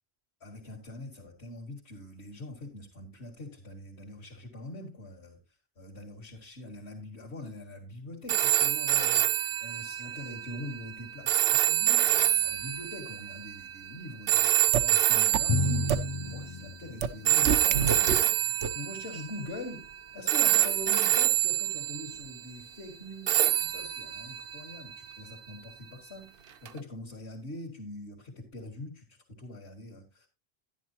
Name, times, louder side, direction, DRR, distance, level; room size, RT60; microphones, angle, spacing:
voice 1, 0.4-5.4 5.8-9.3 9.6-16.0 16.2-19.9 20.1-30.3, left 2 dB, 75° left, -3 dB, 2.2 m, -43 dB
sound 1, 8.3-16.5 17.3-20.0 20.3-22.4 23.3-25.5 26.7-26.8, right 11 dB, 65° right, 0.8 m, -27 dB
sound 2, 14.7-14.8 15.3-15.4 15.9-16.0 17.0-17.1 17.5-18.2 18.6-18.7, right 6 dB, 85° right, 1.1 m, -25 dB
Drum, 15.5-17.9, left 3 dB, 35° left, 0.5 m, -31 dB
11.0 x 10.5 x 2.8 m, 0.26 s
omnidirectional pair, 1.1 m